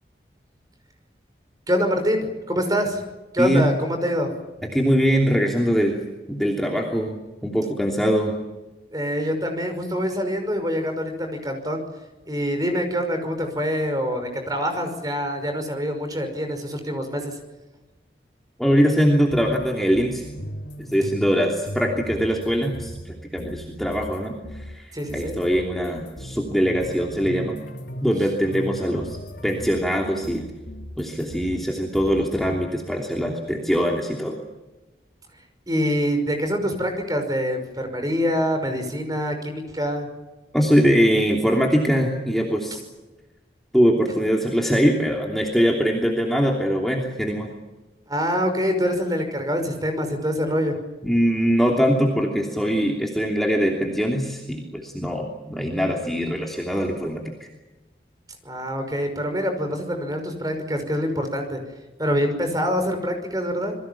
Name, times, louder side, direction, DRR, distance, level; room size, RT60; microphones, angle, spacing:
voice 1, 1.7-3.0 3.3-4.3 8.9-11.8 12.3-17.3 24.9-25.4 35.7-40.1 48.1-50.8 55.5-55.8 58.4-61.6 62.0-63.8, equal, 20° right, 6 dB, 5.8 m, -25 dB
voice 2, 4.7-6.0 6.3-8.4 18.6-20.3 20.8-27.6 28.0-29.2 29.4-30.4 31.0-34.4 40.5-42.8 43.7-47.5 51.0-57.2, equal, ahead, -1 dB, 3.0 m, -22 dB
sound 1, 19.3-24.2 24.4-31.6 31.9-32.5, equal, 85° left, 3.6 m, -37 dB
28.0 x 22.5 x 7.3 m, 1.1 s
head